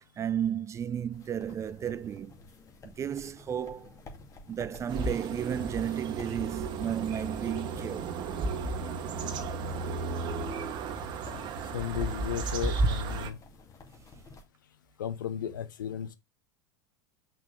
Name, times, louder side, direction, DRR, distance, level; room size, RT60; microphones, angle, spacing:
voice 1, 0.2-2.3 2.8-3.9 4.5-8.2, right 9 dB, 30° right, 0.6 m, -33 dB
sound 1, 1.1-14.4, left 3 dB, 30° left, 2.3 m, -52 dB
sound 2, 4.9-13.3, right 3 dB, 45° right, 1.4 m, -33 dB
voice 2, 11.7-13.4 15.0-16.1, left 9 dB, 85° left, 0.9 m, -34 dB
6.1 x 5.8 x 3.4 m
hypercardioid pair, 90°, 10 cm